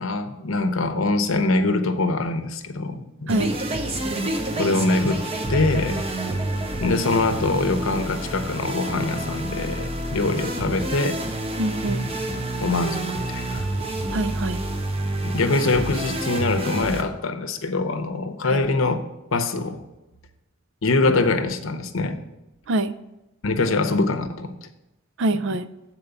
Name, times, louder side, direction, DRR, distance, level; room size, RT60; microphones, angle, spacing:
voice 1, 0.0-3.4 4.6-5.2 5.5-6.0 6.8-11.2 12.6-13.7 15.2-19.0 19.3-19.8 20.8-22.2 23.4-24.5, left 3 dB, 65° left, 8 dB, 0.7 m, -23 dB
sound 1, 3.3-17.0, right 1 dB, 25° right, 0.8 m, -28 dB
voice 2, 11.6-12.1 14.1-14.6 18.5-18.6 22.7-22.9 25.2-25.7, right 2 dB, 60° right, 13 dB, 0.4 m, -24 dB
7.8 x 4.4 x 6.9 m, 0.95 s
head